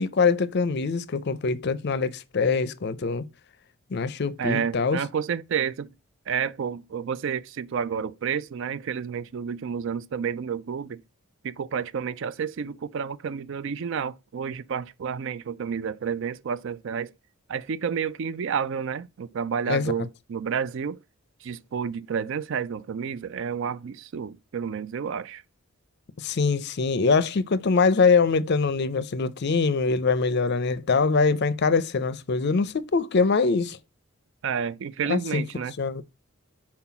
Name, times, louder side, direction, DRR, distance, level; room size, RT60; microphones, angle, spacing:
voice 1, 0.0-3.2 3.9-5.0 19.7-19.9 26.2-33.8 35.1-35.4 35.8-36.0, left 4 dB, 50° left, 0.5 m, -23 dB
voice 2, 4.4-5.9 6.3-11.0 11.4-17.1 17.5-21.0 21.4-25.4 34.4-35.7, right 7 dB, 55° right, 0.4 m, -30 dB
5.7 x 4.4 x 5.8 m
head